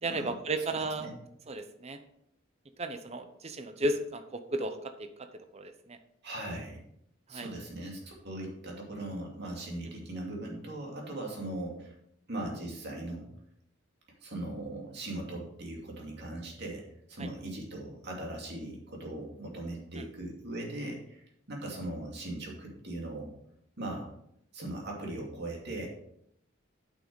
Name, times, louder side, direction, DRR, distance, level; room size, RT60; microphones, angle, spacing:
voice 1, 0.0-1.1 1.5-2.0 2.8-5.3 5.5-6.0 7.3-7.5 17.2-17.3 20.0-20.1, right 2 dB, 30° right, 8 dB, 0.7 m, -34 dB
voice 2, 6.2-6.8 7.3-11.9 12.3-13.3 14.2-16.8 17.1-21.2 21.5-23.3 23.8-24.1 24.5-25.9, right 1 dB, 55° right, -1 dB, 2.5 m, -39 dB
8.4 x 6.4 x 4.7 m, 0.74 s
head